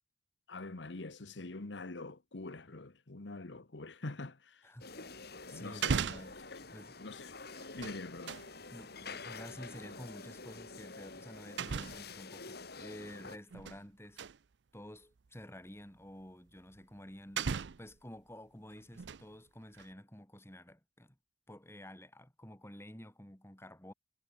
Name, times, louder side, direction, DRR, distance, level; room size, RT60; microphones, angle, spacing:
voice 1, 0.5-4.7 5.5-6.1 6.4-6.6 7.0-7.4 7.7-8.4, left 2 dB, 80° left, 1.2 m, -45 dB
voice 2, 4.6-6.4 6.7-7.0 8.7-14.2 14.7-17.5 17.8-21.2 21.5-23.9, left 1 dB, 15° left, 5.0 m, -51 dB
sound 1, 4.8-13.4, left 4 dB, 60° left, 5.4 m, -48 dB
sound 2, 5.1-5.2 5.7-6.5 7.5-8.5 10.1-10.3 11.6-12.2 13.3-13.8 14.2-14.4 15.3-15.4 16.7-16.8 17.4-18.0 18.8-19.3 19.7-19.9, right 6 dB, 75° right, 0.6 m, -37 dB
head